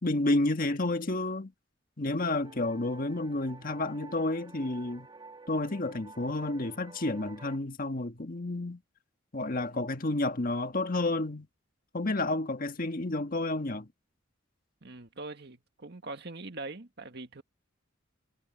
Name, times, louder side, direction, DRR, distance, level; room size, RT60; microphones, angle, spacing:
voice 1, 0.0-1.5 2.0-5.1 5.5-8.8 9.3-11.5 11.9-13.9, left 2 dB, 45° left, 1.6 m, -30 dB
sound 1, 2.4-7.6, right 3 dB, 25° right, 1.6 m, -50 dB
voice 2, 14.8-17.4, right 3 dB, 60° right, 1.8 m, -42 dB
head